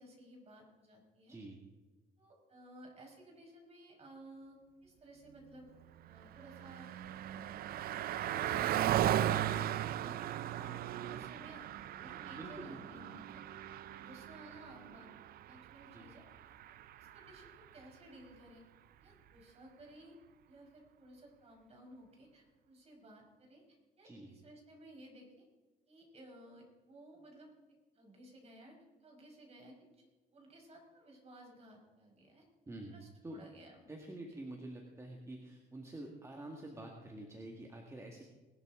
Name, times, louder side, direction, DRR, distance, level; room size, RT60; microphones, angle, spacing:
voice 1, 0.0-1.4 2.2-5.7 6.0-6.9 8.2-13.4 13.9-16.2 17.0-18.6 19.0-20.2 20.5-25.4 25.9-27.5 27.9-30.0 30.3-32.4 32.9-33.9, right 1 dB, 40° right, 0 dB, 5.5 m, -56 dB
voice 2, 1.3-1.6 12.4-13.0 15.9-16.1 24.0-24.4 32.7-33.4 33.9-38.2, right 1 dB, 15° right, 1 dB, 1.9 m, -48 dB
Car passing by, 5.9-17.6, right 11 dB, 65° right, 0.6 m, -37 dB
20.0 x 12.0 x 3.8 m, 1.3 s
cardioid pair, 110°, 17 cm